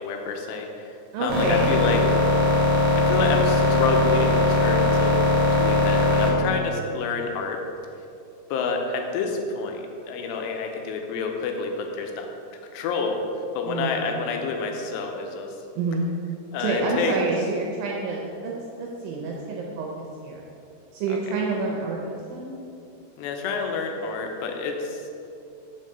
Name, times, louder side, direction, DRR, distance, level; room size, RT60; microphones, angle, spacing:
voice 1, 0.0-2.0 3.0-5.2 5.5-7.6 8.5-12.3 12.7-13.2 13.5-15.6 16.5-17.2 21.1-21.2 23.2-25.0, left 4 dB, 85° left, 3 dB, 2.7 m, -28 dB
voice 2, 1.1-1.7 13.7-14.2 15.8-16.1 16.6-18.5 18.8-20.4 20.9-22.5, right 3 dB, 80° right, -2 dB, 2.1 m, -28 dB
machinery hum, 1.3-6.3, left 2 dB, 45° right, 2.4 m, -20 dB
5.6 x 5.5 x 6.4 m, 2.6 s
omnidirectional pair, 5.0 m